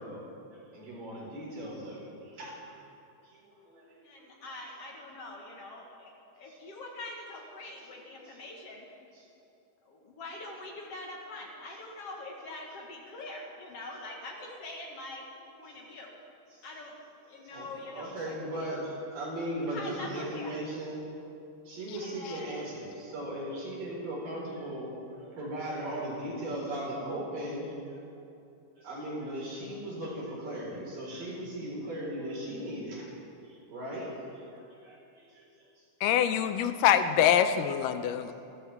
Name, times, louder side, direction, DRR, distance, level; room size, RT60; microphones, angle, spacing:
voice 1, 0.0-2.8 3.2-4.3 6.5-6.6 7.6-7.7 8.2-8.4 9.1-9.2 16.5-16.7 17.4-21.2 21.6-28.1 28.8-33.1 33.4-35.8 36.3-36.4, right 1 dB, 85° right, -5 dB, 6.3 m, -38 dB
voice 2, 4.0-8.9 9.8-15.3 15.6-16.2 16.6-17.0 17.3-18.7 19.6-20.5 22.0-22.7, left 2 dB, 55° left, 0 dB, 2.2 m, -44 dB
voice 3, 36.0-38.3, left 9 dB, 85° left, 9 dB, 2.3 m, -24 dB
27.5 x 13.0 x 3.6 m, 2.6 s
omnidirectional pair, 3.7 m